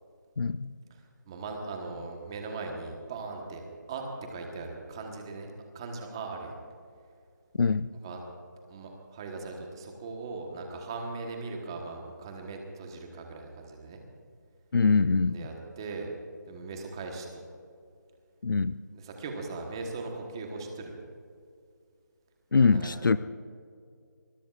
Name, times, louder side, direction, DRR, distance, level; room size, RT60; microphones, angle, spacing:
voice 1, 0.4-0.7 7.6-7.9 14.7-15.4 18.4-18.8 22.5-23.2, left 4 dB, 80° left, 14 dB, 0.5 m, -23 dB
voice 2, 0.9-3.6 3.9-4.0 4.3-6.6 8.0-8.2 8.7-14.0 15.3-16.1 16.5-17.4 18.9-21.0 22.6-23.2, right 3 dB, 15° right, 2 dB, 1.2 m, -39 dB
25.0 x 20.5 x 2.4 m, 2.3 s
hypercardioid pair, 175°, 11 cm